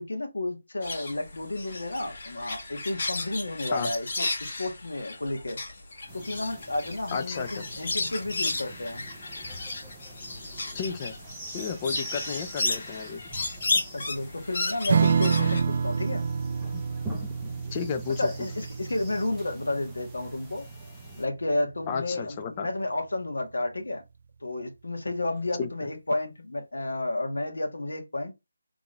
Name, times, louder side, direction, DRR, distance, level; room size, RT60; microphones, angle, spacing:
voice 1, 0.0-5.6 6.1-9.0 13.9-16.3 18.2-20.7 21.2-24.0 24.4-28.3, left 2 dB, 85° left, 1.8 m, -31 dB
sound 1, 0.8-15.6, left 2 dB, 45° left, 1.7 m, -34 dB
sound 2, 6.1-21.3, right 1 dB, 5° right, 0.9 m, -44 dB
voice 2, 7.1-7.6 10.7-11.2 11.5-13.2 17.7-18.3 21.9-22.7 25.6-25.7, left 6 dB, 20° left, 0.5 m, -32 dB
Strum, 14.9-21.7, right 6 dB, 40° right, 0.5 m, -28 dB
3.9 x 3.5 x 3.3 m
figure-of-eight pair, 170°, 0 cm